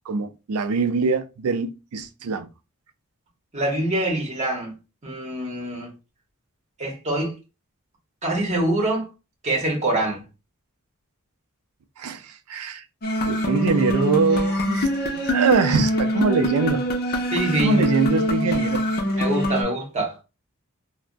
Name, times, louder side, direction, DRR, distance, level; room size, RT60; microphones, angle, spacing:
voice 1, 0.1-2.5 12.0-12.8 13.3-16.9 17.6-18.8, right 4 dB, 85° right, 0.4 m, -23 dB
voice 2, 3.5-4.7 5.0-5.9 6.8-7.3 8.2-9.1 9.4-10.2 17.3-17.8 19.2-20.2, right 1 dB, 35° right, 1.0 m, -24 dB
sound 1, 13.0-19.6, equal, 45° left, 0.6 m, -24 dB
3.4 x 2.0 x 2.5 m
head